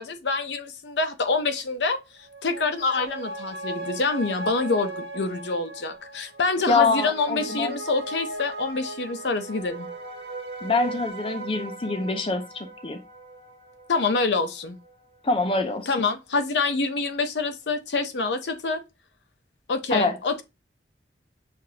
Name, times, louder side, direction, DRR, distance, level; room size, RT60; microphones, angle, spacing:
voice 1, 0.0-2.0 2.4-9.9 13.9-14.8 15.9-18.8 19.7-20.4, left 3 dB, 75° left, 0.7 m, -26 dB
sound 1, 2.2-15.0 15.4-15.5, right 2 dB, 80° right, 1.2 m, -38 dB
voice 2, 6.7-7.7 10.6-13.0 15.2-15.9 19.9-20.1, left 3 dB, 30° left, 0.5 m, -25 dB
6.5 x 2.4 x 2.8 m
head